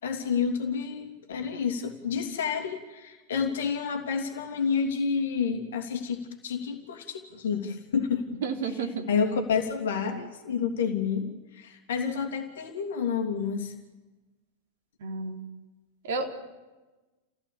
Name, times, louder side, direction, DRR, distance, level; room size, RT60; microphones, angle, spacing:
voice 1, 0.0-8.3 9.1-13.7, left 6 dB, 60° left, 5 dB, 3.0 m, -29 dB
voice 2, 8.4-9.1 15.0-15.4 16.0-16.3, right 4 dB, 55° right, 4 dB, 3.5 m, -31 dB
30.0 x 16.0 x 8.6 m, 1.2 s
figure-of-eight pair, 90°, 0 cm